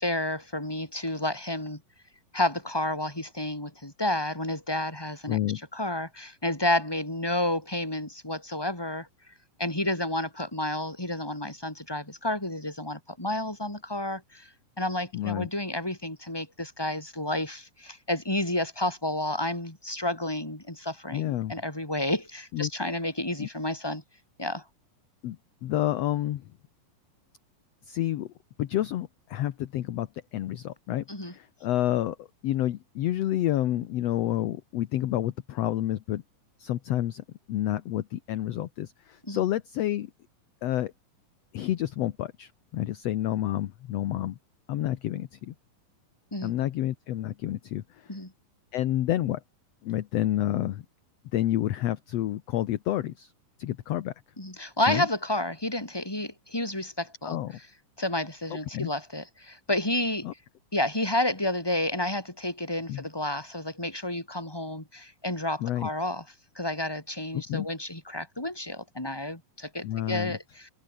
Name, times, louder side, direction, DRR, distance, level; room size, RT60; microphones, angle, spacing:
voice 1, 0.0-1.8 2.3-5.4 5.7-9.1 9.6-14.5 14.8-24.0 24.4-24.6 31.1-31.3 39.3-39.4 46.3-46.5 48.1-48.3 54.4-57.4 58.0-60.3 60.7-66.2 66.5-70.7, left 1 dB, 5° left, 4.9 m, -30 dB
voice 2, 5.3-5.6 15.1-15.5 21.1-21.5 22.5-22.7 23.4-23.5 25.2-26.5 27.9-28.3 28.6-36.2 36.6-40.1 40.6-40.9 41.5-44.4 44.7-45.5 46.4-48.2 48.7-49.4 49.8-50.8 51.3-53.3 53.6-54.1 54.9-55.1 57.2-57.6 58.5-58.9 60.2-60.3 62.9-63.0 65.6-65.9 67.3-67.7 69.8-70.4, left 13 dB, 65° left, 1.7 m, -29 dB
omnidirectional pair, 4.0 m